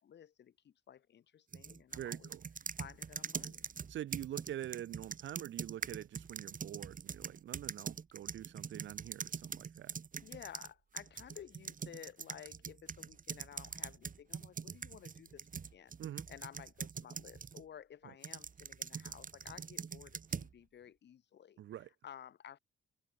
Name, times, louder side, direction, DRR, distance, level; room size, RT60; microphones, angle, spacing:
voice 1, 0.0-2.3 2.8-3.7 10.2-15.9 16.3-21.6 22.0-22.6, left 9 dB, 60° left, 5.0 m, -54 dB
sound 1, 1.5-10.7 11.0-17.6 18.2-20.5, right 6 dB, 45° right, 4.2 m, -43 dB
voice 2, 1.9-2.5 3.9-9.9 16.0-16.3 18.0-18.1 21.6-21.9, right 12 dB, 70° right, 1.4 m, -45 dB
open air
cardioid pair, 90°, 20 cm